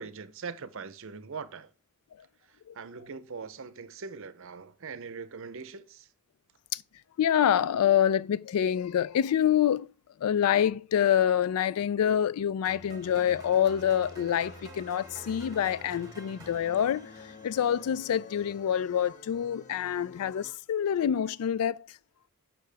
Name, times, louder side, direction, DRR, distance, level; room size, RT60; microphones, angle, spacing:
voice 1, 0.0-1.7 2.7-6.1, right 5 dB, 60° right, 0.6 m, -41 dB
voice 2, 7.2-9.9 10.2-17.1 17.4-21.9, left 9 dB, 80° left, 0.3 m, -26 dB
sound 1, 12.7-18.8, right 1 dB, 15° right, 1.5 m, -49 dB
sound 2, 13.0-20.5, left 4 dB, 35° left, 0.7 m, -51 dB
8.3 x 5.8 x 3.4 m
head